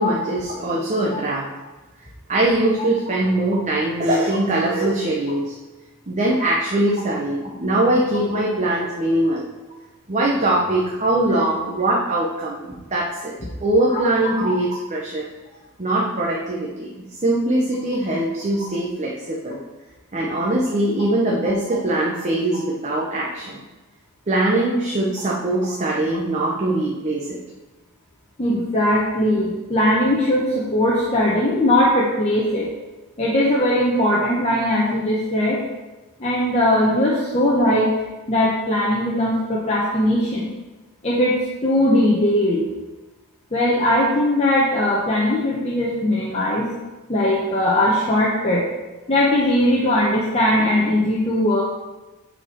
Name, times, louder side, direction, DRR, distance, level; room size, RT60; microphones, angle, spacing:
voice 1, 0.0-1.5 2.3-5.6 6.1-9.5 10.1-13.3 13.6-15.3 15.8-19.6 20.1-23.6 24.3-27.4, right 1 dB, 30° right, -3 dB, 0.9 m, -22 dB
voice 2, 28.4-32.7 33.2-35.6 36.2-37.9 38.3-40.5 41.0-42.7 43.5-46.7 47.1-48.6 49.1-51.6, left 1 dB, 30° left, -6 dB, 1.1 m, -19 dB
8.7 x 4.4 x 4.5 m, 1.1 s
head